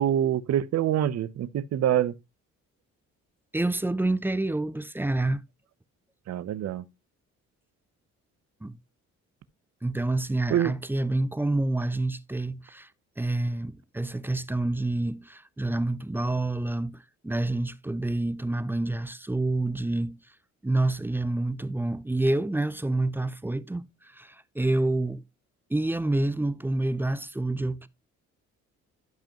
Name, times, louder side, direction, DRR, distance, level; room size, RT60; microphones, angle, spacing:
voice 1, 0.0-2.2 6.3-6.8 10.5-10.7, right 11 dB, 60° right, 0.7 m, -25 dB
voice 2, 3.5-5.4 8.6-8.8 9.8-12.9 13.2-20.2 20.6-23.8 24.1-25.2 25.7-27.9, right 2 dB, 5° right, 0.4 m, -28 dB
12.0 x 5.2 x 2.9 m
cardioid pair, 90°, 30 cm